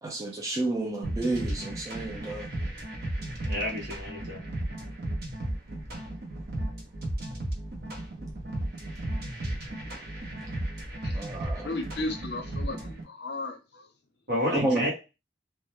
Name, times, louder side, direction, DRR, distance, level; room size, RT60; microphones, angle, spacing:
voice 1, 0.0-2.5 11.1-11.7 14.5-14.9, right 2 dB, 20° right, 0.3 m, -30 dB
sound 1, 1.0-13.0, right 1 dB, 55° right, 0.6 m, -34 dB
voice 2, 3.5-4.4 14.3-14.9, equal, 70° right, 1.0 m, -30 dB
voice 3, 11.6-13.9, left 2 dB, 60° left, 0.6 m, -35 dB
2.1 x 2.0 x 3.0 m
head